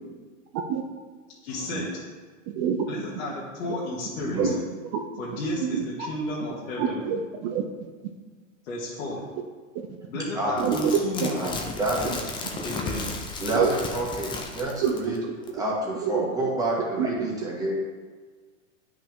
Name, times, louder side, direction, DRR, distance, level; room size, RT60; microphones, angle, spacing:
voice 1, 1.4-1.9 2.8-4.5 5.2-7.0 8.6-9.2 10.1-11.5 12.6-13.1, left 1 dB, 70° left, -7 dB, 2.2 m, -32 dB
voice 2, 4.1-4.6 10.3-10.6 11.3-12.1 13.4-15.2 15.5-17.7, right 1 dB, 10° right, -4 dB, 1.9 m, -29 dB
voice 3, 5.6-6.1 6.8-7.6 10.6-10.9 11.2-11.3 12.1-12.2 13.5-13.7 14.8-15.1 16.0-16.5 17.0-17.3, right 7 dB, 35° right, 3 dB, 0.6 m, -27 dB
sound 1, 10.6-15.2 15.5-15.6, left 3 dB, 10° left, 0.7 m, -34 dB
9.8 x 5.9 x 3.6 m, 1.4 s
supercardioid pair, 145°, 41 cm